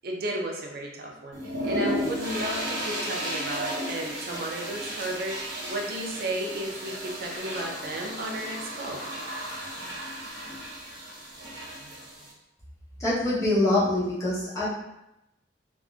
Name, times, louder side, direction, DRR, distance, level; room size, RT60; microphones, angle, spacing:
voice 1, 0.0-9.0, right 1 dB, 60° right, 0 dB, 0.5 m, -33 dB
sound 1, 1.3-12.3, equal, 90° right, 1.4 m, -34 dB
voice 2, 13.0-14.7, left 1 dB, 20° left, -8 dB, 0.9 m, -24 dB
3.6 x 2.4 x 2.4 m, 0.88 s
head